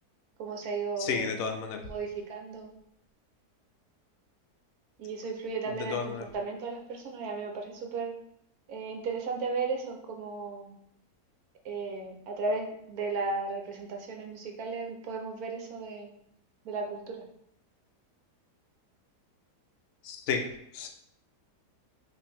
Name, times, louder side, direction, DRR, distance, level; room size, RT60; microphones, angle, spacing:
voice 1, 0.4-1.3 1.9-2.7 5.0-8.1 8.7-10.7 11.6-16.1 16.6-17.2, right 4 dB, 70° right, 2 dB, 1.2 m, -35 dB
voice 2, 1.0-1.9 5.8-6.3 20.0-20.9, left 5 dB, 60° left, 4 dB, 0.8 m, -32 dB
5.7 x 2.6 x 3.4 m, 0.74 s
omnidirectional pair, 1.7 m